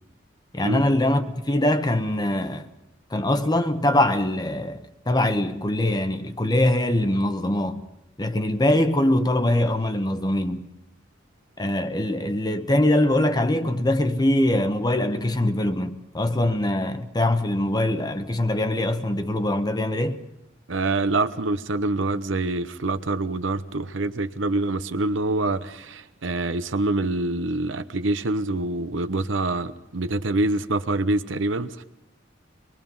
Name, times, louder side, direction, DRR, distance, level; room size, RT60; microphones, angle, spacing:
voice 1, 0.5-2.7 3.1-7.8 8.2-10.7 11.6-20.2, left 1 dB, 20° left, 1.1 m, -23 dB
voice 2, 20.7-31.8, right 2 dB, 80° right, 0.9 m, -25 dB
24.0 x 21.0 x 5.5 m
head